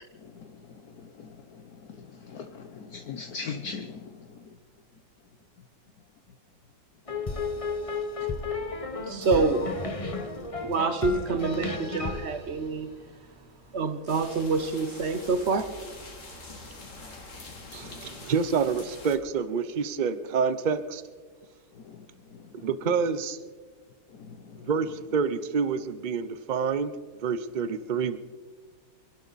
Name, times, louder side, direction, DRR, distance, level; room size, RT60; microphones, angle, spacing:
voice 1, 0.1-4.6 16.5-18.2 21.7-22.7 23.0-23.1 24.1-25.0 27.6-27.7, left 5 dB, 60° left, 1.3 m, -43 dB
sound 1, 7.1-13.4, left 3 dB, 25° left, 0.8 m, -33 dB
voice 2, 9.0-9.7 10.6-12.9 13.7-15.8, right 4 dB, 50° right, 0.9 m, -27 dB
sound 2, 14.1-19.2, left 3 dB, 45° left, 2.3 m, -45 dB
voice 3, 17.7-21.0 22.6-23.4 24.6-26.9 27.2-28.2, right 6 dB, 70° right, 0.4 m, -27 dB
26.0 x 12.0 x 4.1 m
omnidirectional pair, 1.9 m